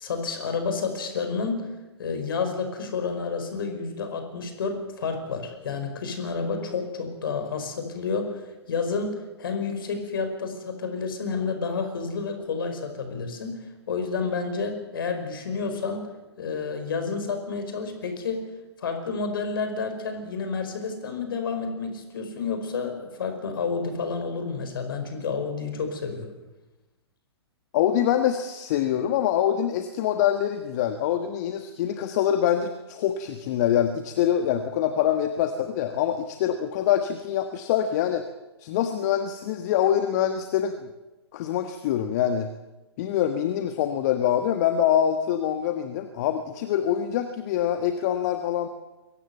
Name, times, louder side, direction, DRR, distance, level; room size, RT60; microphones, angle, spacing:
voice 1, 0.0-1.7 2.0-8.4 8.7-13.6 13.9-16.1 16.4-18.4 18.8-26.3, left 5 dB, 55° left, 7 dB, 5.1 m, -30 dB
voice 2, 27.7-38.2 38.6-40.8 41.3-42.5 43.0-48.7, left 10 dB, 40° left, 8 dB, 1.5 m, -25 dB
23.0 x 17.5 x 8.0 m, 1.1 s
figure-of-eight pair, 115°, 14 cm